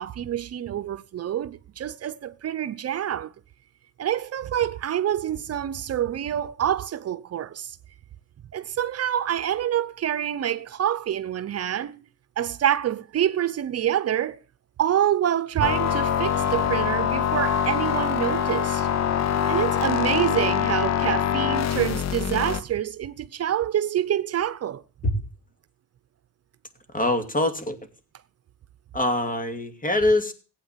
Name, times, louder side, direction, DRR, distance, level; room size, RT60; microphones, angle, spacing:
voice 1, 0.0-3.3 4.0-7.8 8.5-12.0 12.4-14.4 14.8-18.9 19.2-24.8, right 10 dB, 55° right, 0.8 m, -26 dB
sound 1, 15.6-22.6, left 8 dB, 60° left, 1.0 m, -24 dB
voice 2, 26.9-27.8 28.9-30.3, left 2 dB, 25° left, 2.6 m, -23 dB
16.0 x 8.8 x 7.3 m
cardioid pair, 90°, 30 cm